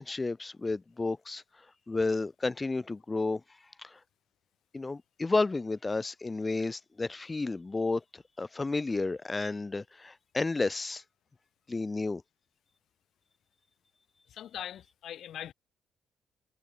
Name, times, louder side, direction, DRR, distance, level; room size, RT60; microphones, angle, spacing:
voice 1, 0.0-1.4 1.9-3.4 3.8-4.0 4.7-11.0 11.7-12.2, left 3 dB, 20° left, 2.0 m, -31 dB
voice 2, 14.3-15.5, left 10 dB, 70° left, 4.4 m, -41 dB
cardioid pair, 90°, 0 cm